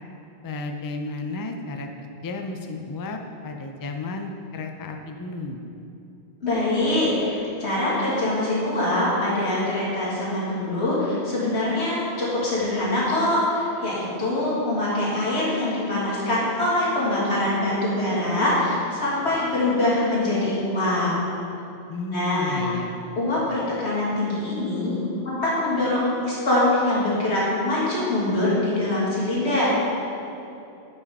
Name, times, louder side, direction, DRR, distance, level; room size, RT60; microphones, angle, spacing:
voice 1, 0.4-5.6 21.9-22.9, left 2 dB, 35° left, 4 dB, 0.3 m, -33 dB
voice 2, 6.4-21.1 22.1-22.7 23.2-25.0 25.2-29.7, left 1 dB, 80° left, -7 dB, 2.4 m, -24 dB
7.2 x 5.6 x 5.3 m, 2.7 s
omnidirectional pair, 1.1 m